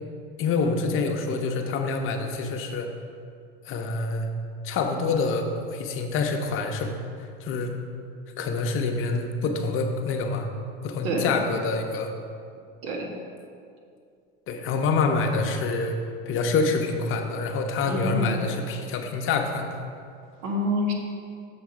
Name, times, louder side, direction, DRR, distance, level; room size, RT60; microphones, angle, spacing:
voice 1, 0.4-2.9 3.7-4.3 4.6-6.9 7.4-7.7 8.4-10.5 10.8-12.1 14.5-16.0 16.3-19.8, left 4 dB, 45° left, 4 dB, 0.9 m, -26 dB
voice 2, 17.9-18.3 20.4-20.9, equal, 65° right, 1 dB, 1.5 m, -27 dB
7.2 x 5.2 x 4.8 m, 2.3 s
hypercardioid pair, 95°, 29 cm